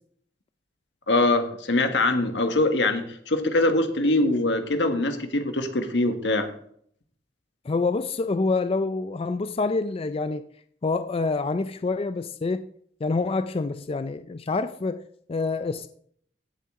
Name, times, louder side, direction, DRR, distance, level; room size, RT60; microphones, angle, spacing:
voice 1, 1.1-6.5, left 2 dB, 85° left, 1.5 m, -23 dB
voice 2, 7.7-10.4 10.8-12.7 13.0-15.9, left 3 dB, 35° left, 0.4 m, -27 dB
16.0 x 7.5 x 3.7 m
head